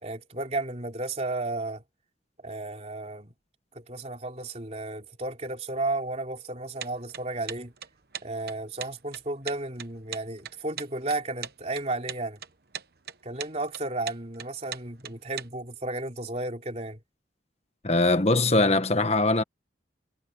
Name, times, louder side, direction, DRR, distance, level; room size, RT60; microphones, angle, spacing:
voice 1, 0.0-1.8 2.4-3.3 3.7-7.7 8.2-12.4 13.2-17.0, right 2 dB, 35° right, 3.6 m, -33 dB
sound 1, 6.8-15.5, right 9 dB, 55° right, 1.1 m, -39 dB
voice 2, 17.8-19.4, left 2 dB, 35° left, 1.5 m, -22 dB
head